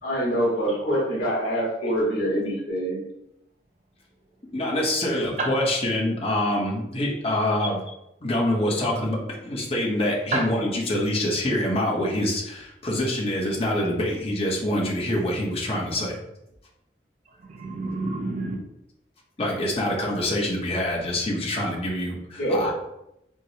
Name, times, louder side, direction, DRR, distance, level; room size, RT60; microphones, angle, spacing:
voice 1, 0.0-3.0 22.4-22.7, equal, 75° left, -9 dB, 1.4 m, -25 dB
voice 2, 0.7-2.0 2.4-2.5 4.5-7.8 8.2-16.2 19.4-22.7, left 1 dB, 35° left, -3 dB, 0.9 m, -26 dB
voice 3, 17.3-18.6, right 2 dB, 45° right, 2 dB, 0.6 m, -29 dB
4.5 x 2.1 x 2.8 m, 0.83 s
head